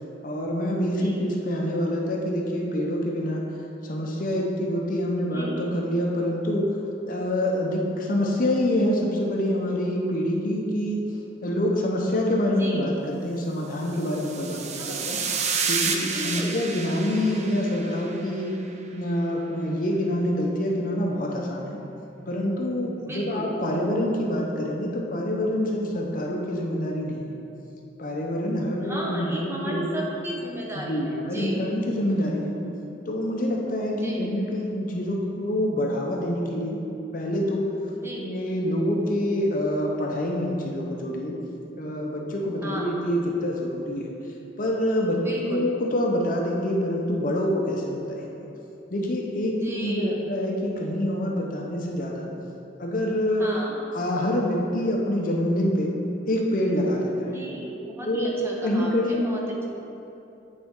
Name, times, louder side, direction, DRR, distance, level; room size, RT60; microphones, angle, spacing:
voice 1, 0.2-3.4 3.8-6.7 7.0-11.1 11.4-15.2 15.7-18.6 18.9-21.8 22.3-27.4 28.0-30.0 30.7-32.5 33.1-36.8 37.1-37.7 38.2-41.4 41.8-44.1 44.6-48.3 48.9-52.3 52.8-53.5 53.9-55.9 56.3-57.4 58.1-58.4 58.6-59.3, left 1 dB, 45° left, 0 dB, 0.7 m, -26 dB
voice 2, 5.3-5.7 12.5-12.8 14.8-15.1 16.1-16.6 23.1-23.5 28.8-31.6 33.9-34.3 38.0-38.3 42.6-42.9 45.2-45.7 49.5-50.2 53.4-53.8 57.3-59.7, right 1 dB, 15° right, -3 dB, 0.8 m, -34 dB
sound 1, 13.9-18.4, right 5 dB, 35° right, 0.4 m, -30 dB
8.7 x 4.4 x 3.7 m, 2.8 s
head